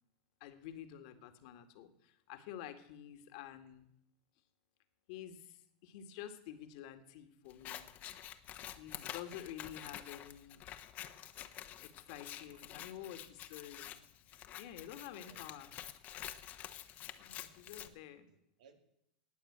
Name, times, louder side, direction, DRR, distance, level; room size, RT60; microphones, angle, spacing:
voice 1, 0.4-3.9 5.1-7.9 8.8-10.6 11.8-15.7 17.2-18.3, left 11 dB, 60° left, 8 dB, 2.0 m, -50 dB
Scissors, 7.5-17.9, left 12 dB, 40° left, 1.2 m, -48 dB
voice 2, 12.3-13.2 14.8-15.4 17.7-18.0 18.3-18.8, right 6 dB, 80° right, 7 dB, 2.3 m, -65 dB
19.0 x 7.3 x 8.8 m, 0.76 s
supercardioid pair, 120°, 4 cm